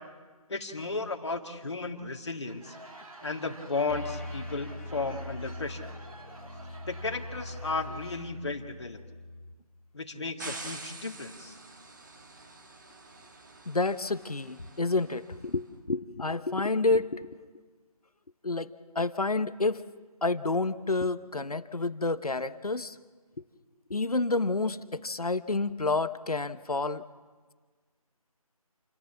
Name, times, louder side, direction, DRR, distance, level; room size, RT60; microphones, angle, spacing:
voice 1, 0.5-2.8 3.2-5.9 6.8-9.0 9.9-11.6, left 3 dB, 45° left, 4 dB, 2.1 m, -34 dB
Laughter / Crowd, 2.3-8.5, right 2 dB, 65° right, 3.1 m, -50 dB
sound 1, 3.9-9.5, left 1 dB, 25° left, 1.6 m, -42 dB
sound 2, 10.4-15.5, right 3 dB, 30° right, 1.9 m, -46 dB
voice 2, 13.7-17.4 18.4-18.7 18.9-19.8 20.2-22.9 23.9-27.0, left 3 dB, 75° left, 13 dB, 1.2 m, -29 dB
28.0 x 13.5 x 7.2 m, 1.4 s
figure-of-eight pair, 165°, 19 cm